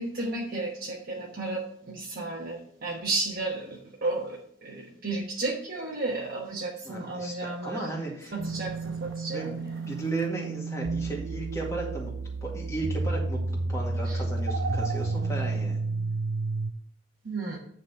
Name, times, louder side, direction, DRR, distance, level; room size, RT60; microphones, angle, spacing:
voice 1, 0.0-7.9 8.3-9.7 14.0-14.2 17.2-17.6, right 2 dB, 45° right, -3 dB, 1.2 m, -33 dB
voice 2, 6.8-8.4 9.3-9.5 9.9-12.1 12.4-15.8, right 2 dB, 15° left, -2 dB, 2.0 m, -35 dB
sound 1, 8.4-16.7, right 3 dB, 65° right, 0.6 m, -31 dB
9.6 x 4.1 x 5.5 m, 0.64 s
head